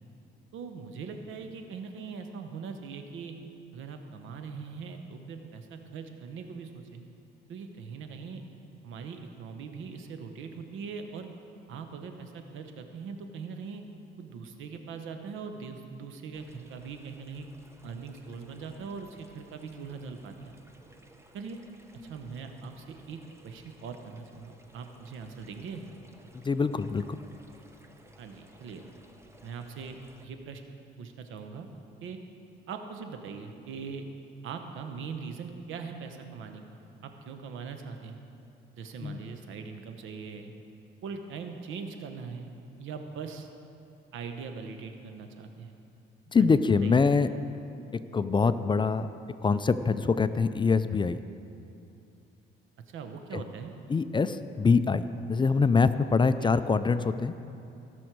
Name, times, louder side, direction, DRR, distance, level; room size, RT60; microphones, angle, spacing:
voice 1, 0.5-3.3 3.7-7.0 7.5-8.4 8.8-11.3 11.7-13.8 14.2-17.5 17.8-20.6 21.3-21.6 22.0-23.2 23.4-25.8 28.2-28.8 29.4-30.6 31.0-31.7 32.0-32.2 32.7-34.1 34.4-38.2 38.8-40.5 41.0-42.5 42.8-43.5 44.1-45.7 46.4-46.5 46.8-46.9 52.9-53.7 56.4-56.5, right 5 dB, 80° right, 6 dB, 1.0 m, -41 dB
sound 1, 16.3-30.3, right 1 dB, 15° right, 0.9 m, -58 dB
voice 2, 26.3-27.2 39.0-39.2 46.3-47.3 47.9-49.1 49.4-51.2 53.3-53.4 53.9-57.3, left 4 dB, 25° left, 12 dB, 0.4 m, -24 dB
17.0 x 6.2 x 4.6 m, 2.7 s
cardioid pair, 90°, 20 cm